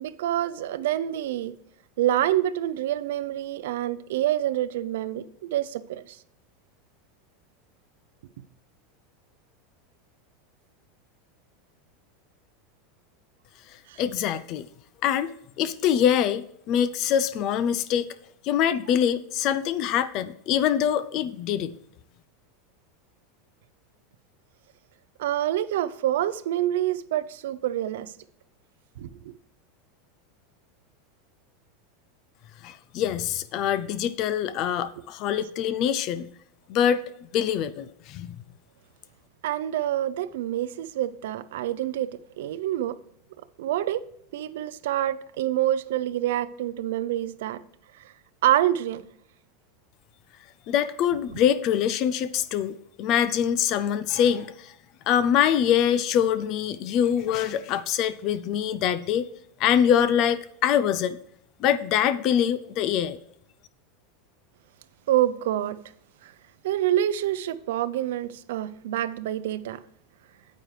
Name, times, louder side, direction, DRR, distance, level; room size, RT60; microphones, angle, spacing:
voice 1, 0.0-1.5 2.0-6.2 13.9-14.0 25.2-28.1 29.0-29.3 35.0-35.1 39.4-43.0 43.6-44.0 44.3-47.6 48.0-48.1 48.4-49.0 65.1-65.8 66.2-66.3 66.6-69.8, right 12 dB, 70° right, 0.5 m, -27 dB
voice 2, 14.0-14.7 15.0-15.3 15.6-18.1 18.4-21.8 32.6-36.3 36.7-37.0 37.3-38.4 50.7-54.7 55.1-59.3 59.6-61.2 61.6-63.2, left 9 dB, 35° left, 0.4 m, -24 dB
9.2 x 9.0 x 3.2 m
supercardioid pair, 180°, 0 cm